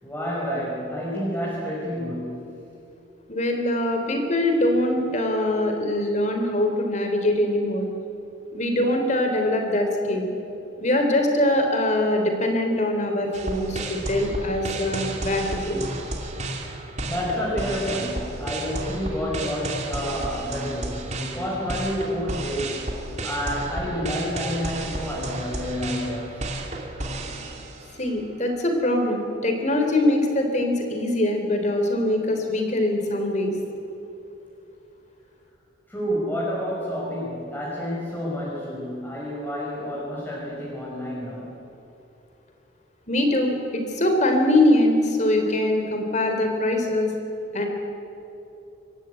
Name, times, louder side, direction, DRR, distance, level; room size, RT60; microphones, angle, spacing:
voice 1, 0.0-2.5 17.0-22.9 23.2-26.4 35.9-41.5, equal, 10° left, -6 dB, 5.1 m, -29 dB
voice 2, 3.3-7.9 8.5-10.3 10.8-15.9 28.0-33.5 43.1-47.1 47.5-47.7, left 1 dB, 40° left, 4 dB, 3.4 m, -23 dB
sound 1, 13.3-28.1, right 2 dB, 40° right, 2.7 m, -32 dB
25.0 x 15.0 x 9.1 m, 2.8 s
head